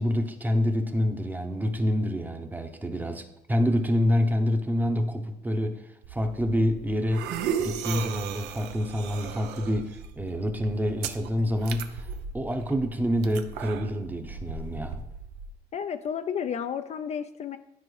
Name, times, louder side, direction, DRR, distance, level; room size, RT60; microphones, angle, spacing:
voice 1, 0.0-5.8 6.1-7.3 7.6-12.1 12.3-15.0, equal, 10° right, 6 dB, 0.7 m, -27 dB
sound 1, 6.0-15.5, right 7 dB, 85° right, 0.6 m, -36 dB
voice 2, 15.7-17.6, left 7 dB, 40° left, 9 dB, 0.4 m, -32 dB
12.0 x 4.6 x 3.2 m, 0.88 s
cardioid pair, 110°, 17 cm